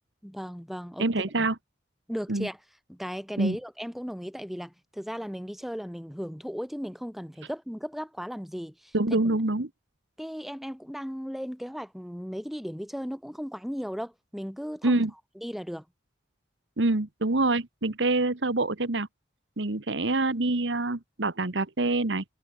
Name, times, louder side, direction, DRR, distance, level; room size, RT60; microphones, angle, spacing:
voice 1, 0.2-1.1 2.1-2.6 2.9-9.0 10.2-15.0 15.4-15.8, equal, ahead, 5.6 m, -36 dB
voice 2, 1.0-1.6 2.3-2.5 3.4-3.6 8.9-9.7 14.8-15.1 16.8-19.1 19.6-22.2, right 2 dB, 75° right, 1.5 m, -26 dB
head